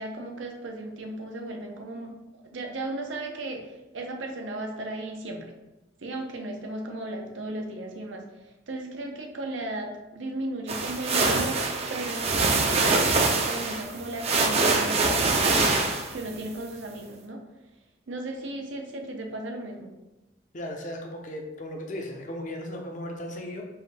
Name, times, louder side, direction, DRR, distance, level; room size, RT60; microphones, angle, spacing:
voice 1, 0.0-5.5 6.0-15.7 16.1-17.4 18.1-19.9, right 1 dB, 85° right, 3 dB, 0.7 m, -36 dB
sound 1, 10.7-16.3, right 3 dB, 35° right, 0.4 m, -24 dB
voice 2, 20.5-23.6, left 1 dB, 40° left, 1 dB, 0.6 m, -36 dB
4.7 x 2.6 x 3.3 m, 1.0 s
head